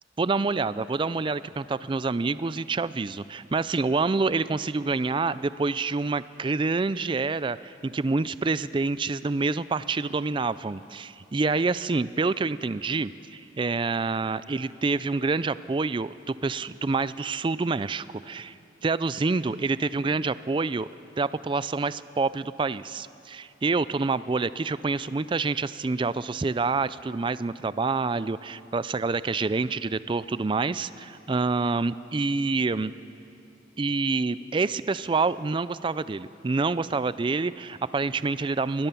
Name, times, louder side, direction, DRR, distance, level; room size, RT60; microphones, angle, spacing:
voice 1, 0.2-20.9 21.2-32.9 33.8-38.9, right 3 dB, 30° right, 16 dB, 0.4 m, -27 dB
24.0 x 17.5 x 7.0 m, 2.7 s
head